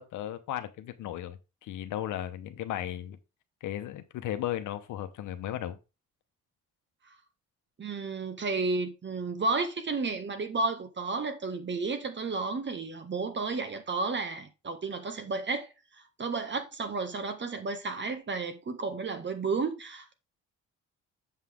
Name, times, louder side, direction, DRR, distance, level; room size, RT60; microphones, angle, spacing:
voice 1, 0.0-3.2 3.6-5.8, left 12 dB, 80° left, 1.0 m, -35 dB
voice 2, 7.8-20.1, right 3 dB, 35° right, 1.5 m, -32 dB
7.4 x 5.6 x 3.6 m
cardioid pair, 90°, 30 cm